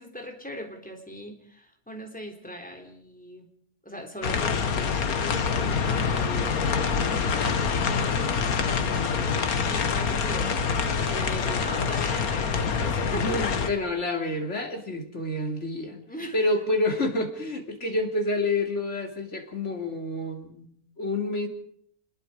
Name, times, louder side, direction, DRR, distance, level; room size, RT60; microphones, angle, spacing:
voice 1, 0.0-3.5 3.8-8.3 8.6-13.6 16.1-16.4, equal, 5° left, 2 dB, 3.5 m, -40 dB
sound 1, 4.2-13.7, left 5 dB, 70° left, 1.8 m, -26 dB
voice 2, 13.1-16.0 16.3-21.5, left 2 dB, 50° left, 3 dB, 3.3 m, -28 dB
26.5 x 21.0 x 5.0 m, 0.64 s
omnidirectional pair, 1.6 m